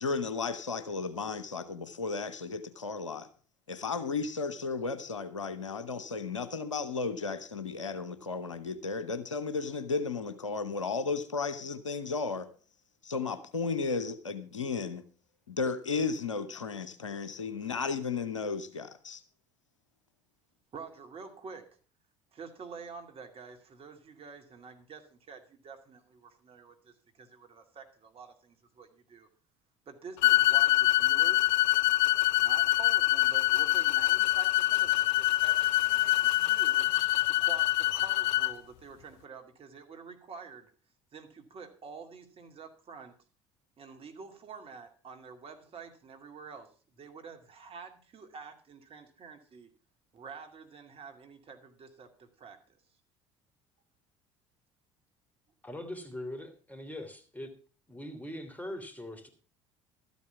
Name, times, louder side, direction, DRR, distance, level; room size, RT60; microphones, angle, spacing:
voice 1, 0.0-3.3 3.7-12.5 13.0-15.0 15.5-19.2, left 4 dB, 85° left, 12 dB, 0.9 m, -34 dB
voice 2, 20.7-21.8 22.3-29.3 29.9-31.6 32.4-36.9 37.3-40.7 41.1-43.2 43.8-49.7 50.1-52.8, right 5 dB, 40° right, 5 dB, 2.4 m, -48 dB
sound 1, 30.2-38.5, left 17 dB, 65° left, 0.5 m, -25 dB
voice 3, 55.6-57.5 57.9-59.3, left 1 dB, 10° left, 7 dB, 3.1 m, -41 dB
13.0 x 8.3 x 5.9 m, 0.38 s
figure-of-eight pair, 60°, 15 cm